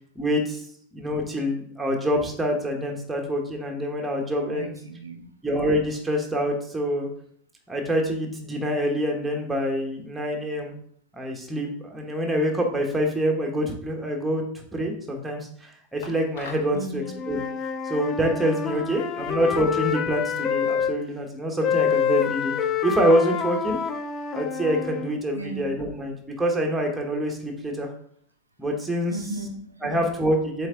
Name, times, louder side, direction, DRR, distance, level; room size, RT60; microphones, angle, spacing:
voice 1, 0.1-0.6 0.9-4.7 5.4-7.1 7.7-10.7 11.1-17.4 17.8-22.5 22.8-23.8 24.3-27.9 28.6-29.2 29.8-30.7, equal, 10° right, 1 dB, 1.2 m, -26 dB
voice 2, 4.5-5.3 16.7-17.2 18.6-19.2 25.3-25.7 29.1-30.0, right 2 dB, 85° right, 3 dB, 0.8 m, -36 dB
sound 1, 16.0-16.8, left 4 dB, 55° left, 1.0 m, -40 dB
Wind instrument woodwind instrument, 17.0-20.9 21.6-25.1, left 7 dB, 30° left, 0.6 m, -27 dB
7.7 x 3.5 x 3.7 m, 0.62 s
figure-of-eight pair, 90°, 0 cm